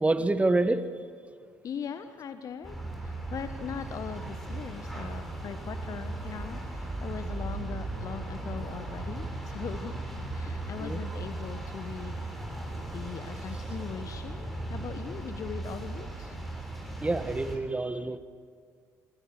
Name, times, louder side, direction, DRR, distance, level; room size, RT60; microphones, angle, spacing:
voice 1, 0.0-0.9 10.8-11.0 17.0-18.2, right 2 dB, 15° right, 12 dB, 1.7 m, -27 dB
voice 2, 1.6-2.8 3.0-10.0 10.3-12.2 12.8-16.4, left 7 dB, 45° left, 10 dB, 1.3 m, -40 dB
sound 1, 2.6-17.6, right 2 dB, ahead, 7.0 m, -37 dB
26.5 x 23.0 x 6.7 m, 2.2 s
figure-of-eight pair, 50°, 8 cm